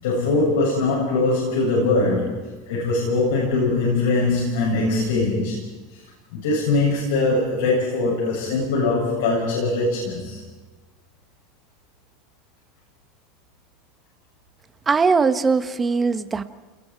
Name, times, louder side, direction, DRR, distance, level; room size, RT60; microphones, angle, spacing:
voice 1, 0.0-5.6 6.3-10.4, left 3 dB, 80° left, -4 dB, 7.5 m, -22 dB
voice 2, 14.9-16.4, right 4 dB, 20° right, 11 dB, 1.4 m, -20 dB
29.5 x 20.5 x 4.7 m, 1.2 s
hypercardioid pair, 95°, 0 cm